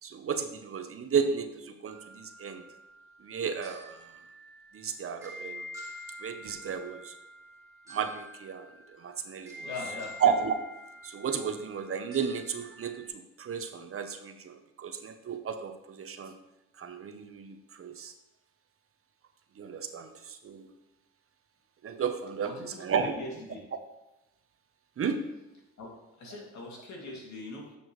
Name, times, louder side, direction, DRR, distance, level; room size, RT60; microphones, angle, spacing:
voice 1, 0.0-2.6 3.2-4.0 4.7-5.7 6.2-7.1 7.9-9.7 10.2-10.5 11.0-16.3 16.8-18.1 19.6-20.7 21.8-23.1 25.0-25.2, right 6 dB, 45° right, 8 dB, 0.9 m, -33 dB
sound 1, 1.9-13.1, left 1 dB, 10° right, 2.7 m, -47 dB
voice 2, 9.6-10.1 22.4-23.6 25.8-25.9 26.2-27.8, left 2 dB, 65° left, -1 dB, 2.5 m, -41 dB
9.1 x 7.0 x 3.2 m, 0.94 s
cardioid pair, 90°, 30 cm